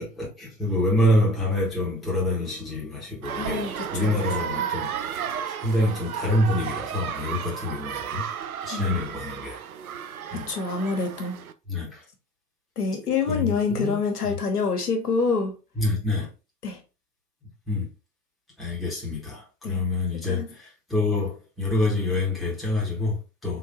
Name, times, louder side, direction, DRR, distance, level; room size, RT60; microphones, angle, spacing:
voice 1, 0.0-8.2 8.6-9.6 10.3-10.5 11.7-12.0 13.3-14.0 14.2-14.4 15.8-16.3 17.7-17.9 18.6-23.6, left 1 dB, ahead, 0.9 m, -26 dB
sound 1, 3.2-11.5, right 9 dB, 65° right, 0.6 m, -33 dB
voice 2, 3.4-4.6 8.7-9.0 10.3-11.4 12.8-15.5 16.6-16.8 19.6-19.8 20.3-20.5, left 4 dB, 70° left, 1.3 m, -27 dB
3.7 x 2.7 x 3.9 m
figure-of-eight pair, 120°, 48 cm